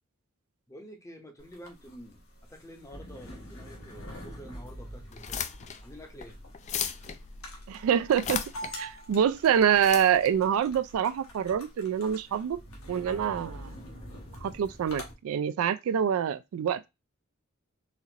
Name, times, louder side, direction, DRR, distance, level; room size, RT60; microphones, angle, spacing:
voice 1, 0.7-2.2 2.5-5.5 5.8-6.4, equal, 15° left, 0.7 m, -48 dB
sound 1, 1.4-15.1, equal, 80° left, 1.1 m, -45 dB
sound 2, 5.1-11.6, left 7 dB, 35° left, 0.3 m, -38 dB
voice 2, 7.7-8.4 8.7-12.6 12.9-13.7 14.4-16.9, right 8 dB, 75° right, 0.3 m, -26 dB
4.2 x 2.4 x 2.8 m
head